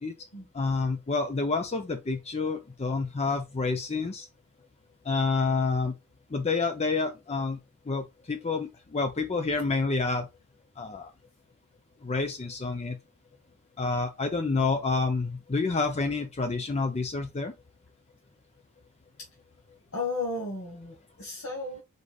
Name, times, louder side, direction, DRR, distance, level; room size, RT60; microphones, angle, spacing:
voice 1, 0.5-4.3 5.0-5.9 6.3-7.6 7.9-10.3 10.8-11.1 12.0-13.0 13.8-17.5, left 4 dB, 30° left, 0.5 m, -28 dB
voice 2, 19.9-21.8, left 3 dB, 65° left, 1.3 m, -34 dB
4.9 x 4.0 x 2.3 m
head